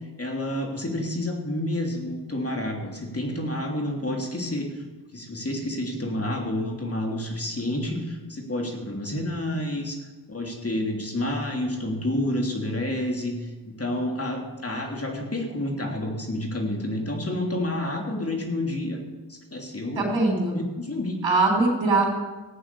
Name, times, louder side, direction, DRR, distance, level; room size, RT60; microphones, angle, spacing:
voice 1, 0.2-4.8 5.1-10.0 10.3-19.0 19.3-20.0 20.5-21.2, left 1 dB, 30° left, 2 dB, 3.1 m, -29 dB
voice 2, 20.0-20.6 21.2-22.1, right 3 dB, 85° right, 1 dB, 3.6 m, -21 dB
15.5 x 8.6 x 7.0 m, 1.2 s
cardioid pair, 60°, 45 cm